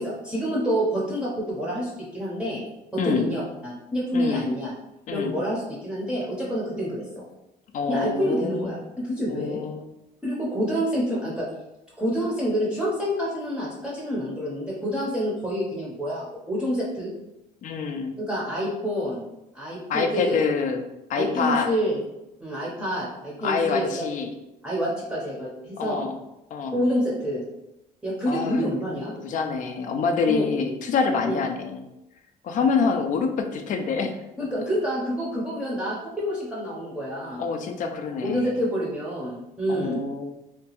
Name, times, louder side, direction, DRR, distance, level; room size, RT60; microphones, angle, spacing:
voice 1, 0.0-2.6 2.9-4.7 5.1-7.2 7.9-9.6 10.2-11.5 12.0-17.1 18.2-19.2 19.5-20.4 21.1-22.0 22.4-23.9 24.6-26.1 26.7-27.4 28.0-29.1 30.3-30.5 31.2-31.4 34.4-37.5 38.2-40.0, equal, 5° right, -6 dB, 0.6 m, -27 dB
voice 2, 4.1-4.5 5.1-5.3 7.7-8.7 9.3-9.9 17.6-18.1 19.9-21.7 23.4-24.3 25.8-26.2 26.5-26.8 28.3-28.7 29.2-31.9 32.4-34.2 37.4-38.5 39.7-40.2, left 5 dB, 50° left, 5 dB, 0.4 m, -26 dB
2.8 x 2.2 x 2.9 m, 0.92 s
cardioid pair, 110°, 17 cm